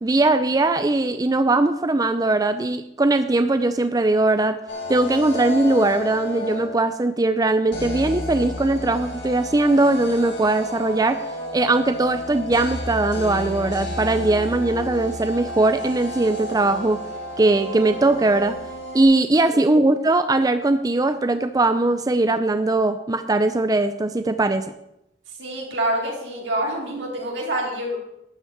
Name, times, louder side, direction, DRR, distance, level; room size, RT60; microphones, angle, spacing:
voice 1, 0.0-4.6 4.9-11.2 11.5-17.0 17.4-18.6 18.9-24.6, right 2 dB, 20° right, 9 dB, 0.5 m, -20 dB
sound 1, 4.7-7.0 7.7-19.0, left 1 dB, 80° left, 4.4 m, -32 dB
voice 2, 25.4-28.0, right 1 dB, 80° right, -2 dB, 4.3 m, -26 dB
12.5 x 5.6 x 8.7 m, 0.82 s
head